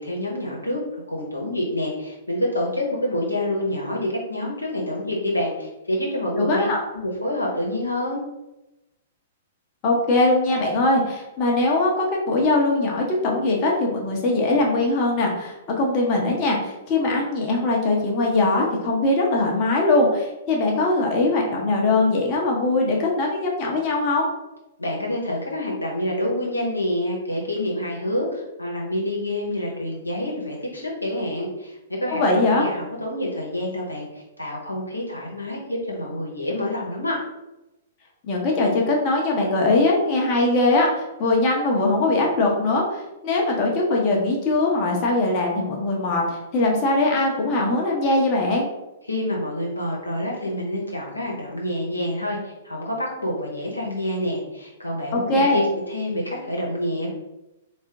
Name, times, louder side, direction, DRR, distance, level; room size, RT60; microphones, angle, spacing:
voice 1, 0.0-6.7 6.9-8.2 24.8-37.2 49.0-57.1, left 1 dB, 85° left, -2 dB, 0.9 m, -27 dB
voice 2, 6.4-6.8 9.8-24.3 32.1-32.6 38.2-48.7 55.1-55.6, left 2 dB, 35° left, -1 dB, 0.8 m, -21 dB
3.6 x 2.5 x 3.4 m, 0.95 s
figure-of-eight pair, 110°, 0 cm